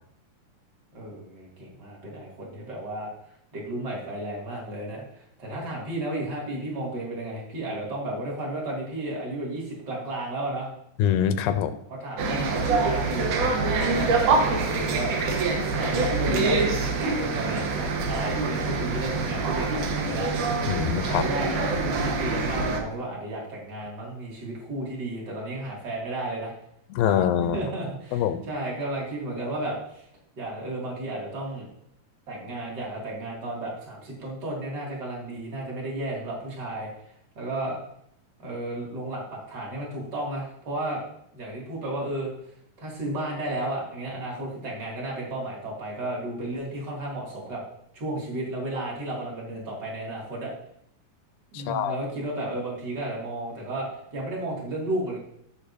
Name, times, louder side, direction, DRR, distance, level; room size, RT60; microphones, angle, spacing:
voice 1, 0.9-3.1 3.5-10.7 11.9-15.1 15.6-20.6 21.0-26.5 27.4-30.0 30.4-31.7 32.3-36.9 37.3-37.8 38.4-41.0 41.3-42.3 42.8-47.6 47.9-50.5 51.5-55.2, right 1 dB, 35° right, -4 dB, 2.5 m, -33 dB
voice 2, 11.0-11.7 20.7-21.3 26.9-27.6 28.1-28.5 51.5-52.0, left 9 dB, 85° left, 10 dB, 2.3 m, -24 dB
sound 1, 12.2-22.8, right 3 dB, 70° right, 2.3 m, -25 dB
15.0 x 6.4 x 2.7 m, 0.74 s
omnidirectional pair, 4.1 m